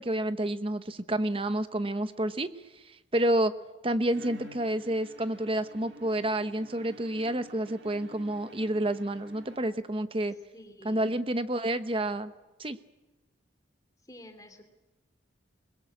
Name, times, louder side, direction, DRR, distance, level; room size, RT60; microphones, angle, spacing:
voice 1, 0.0-2.5 3.1-3.5 3.8-10.3 10.8-12.3 12.6-12.8, right 1 dB, 30° right, 11 dB, 0.9 m, -29 dB
Bowed string instrument, 4.1-10.1, right 1 dB, 65° right, 2.2 m, -51 dB
voice 2, 10.3-11.1 14.0-14.7, left 1 dB, 20° left, 6 dB, 2.9 m, -51 dB
22.5 x 21.0 x 8.5 m, 1.2 s
head